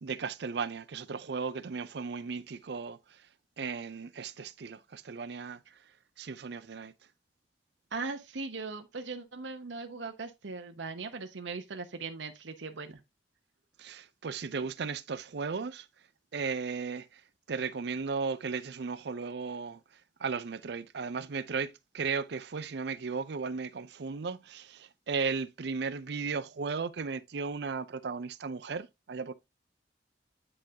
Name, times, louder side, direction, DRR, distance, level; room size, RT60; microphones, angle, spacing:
voice 1, 0.0-3.0 3.6-5.6 6.2-6.9 13.8-15.9 16.3-17.2 17.5-19.8 20.2-29.3, right 5 dB, 65° right, 0.5 m, -35 dB
voice 2, 7.9-13.0, right 4 dB, 80° right, 0.9 m, -39 dB
9.7 x 3.8 x 2.8 m
head